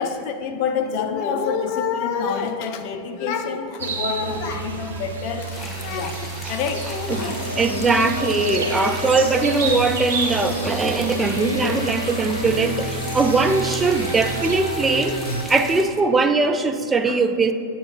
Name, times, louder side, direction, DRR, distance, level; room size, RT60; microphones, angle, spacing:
voice 1, 0.0-7.4 8.4-8.8 9.1-9.3 14.2-14.3 14.9-15.3 17.1-17.2, left 6 dB, 45° left, 7 dB, 0.5 m, -27 dB
sound 1, 3.8-14.6, right 4 dB, 65° right, 0.8 m, -31 dB
sound 2, 5.5-15.8, left 1 dB, 10° left, 0.8 m, -37 dB
sound 3, 7.1-15.4, equal, 85° left, 0.7 m, -30 dB
voice 2, 7.6-15.2 15.5-17.5, right 3 dB, 15° right, 8 dB, 0.4 m, -20 dB
8.1 x 2.9 x 4.9 m, 2.4 s
figure-of-eight pair, 90°, 0 cm